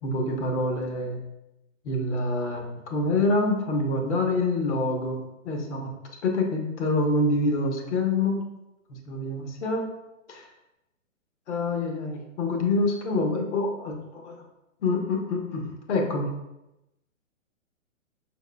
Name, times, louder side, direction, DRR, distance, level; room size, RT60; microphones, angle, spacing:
voice 1, 0.0-1.2 1.8-5.9 6.2-8.4 9.1-9.8 10.3-10.5 11.5-14.4 14.8-16.3, left 2 dB, 60° left, 2 dB, 0.9 m, -26 dB
4.6 x 3.3 x 2.2 m, 0.91 s
hypercardioid pair, 145°, 39 cm